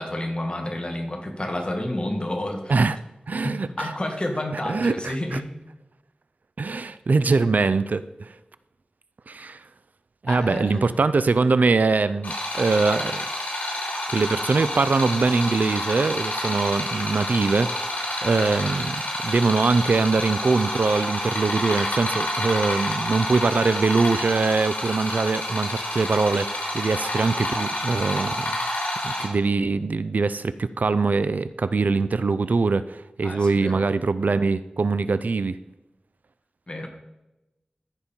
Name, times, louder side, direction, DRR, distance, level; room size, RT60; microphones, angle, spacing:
voice 1, 0.0-2.9 3.4-5.5 10.3-10.9 33.2-33.9 36.7-36.9, left 1 dB, 35° left, 3 dB, 1.8 m, -30 dB
voice 2, 3.3-3.9 4.7-5.4 6.6-8.3 9.3-9.6 10.2-13.3 14.1-17.9 18.2-28.5 29.0-35.6, right 4 dB, 80° right, 14 dB, 0.4 m, -23 dB
sound 1, 12.2-29.3, left 1 dB, 70° left, 3.9 m, -29 dB
14.0 x 5.3 x 4.4 m, 0.96 s
wide cardioid pair, 70°, 3 cm